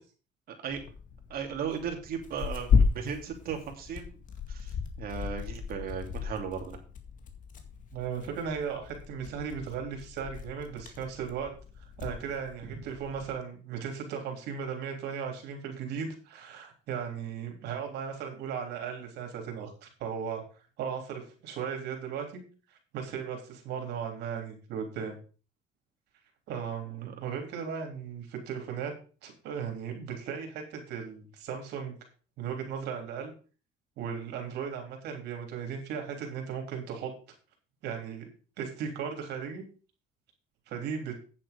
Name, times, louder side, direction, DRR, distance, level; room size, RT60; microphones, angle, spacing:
Tearing, 0.7-13.3, left 5 dB, 50° left, 2.0 m, -34 dB
voice 1, 1.3-4.2 4.5-6.8 12.6-12.7, right 7 dB, 60° right, 3 dB, 2.8 m, -36 dB
voice 2, 7.9-11.5 11.8-20.4 20.8-22.4 22.7-25.2 26.5-28.9 29.2-31.9 32.4-33.3 34.0-37.1 37.8-38.3 38.6-39.6 40.7-41.1, right 7 dB, 85° right, 3 dB, 3.4 m, -36 dB
9.2 x 7.4 x 5.2 m, 0.37 s
cardioid pair, 110°, 17 cm